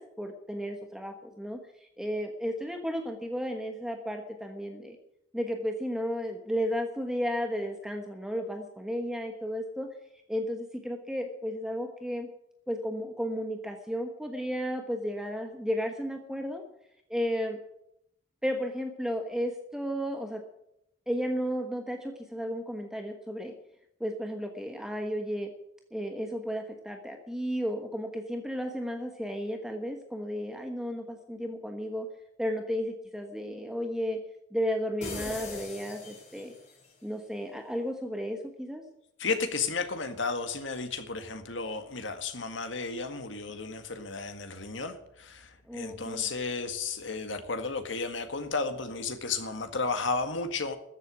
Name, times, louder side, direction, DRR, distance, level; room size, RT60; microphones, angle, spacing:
voice 1, 0.0-5.0 5.3-9.9 10.3-12.3 12.7-16.6 17.1-17.6 18.4-20.4 21.1-23.5 24.0-25.5 25.9-32.1 32.4-34.2 34.5-36.5 37.0-38.8 45.7-46.3, equal, 5° right, 4 dB, 1.2 m, -33 dB
sound 1, 35.0-36.8, left 3 dB, 40° left, 4.7 m, -40 dB
voice 2, 39.2-50.8, left 4 dB, 75° left, 8 dB, 1.8 m, -33 dB
13.5 x 8.1 x 10.0 m, 0.78 s
head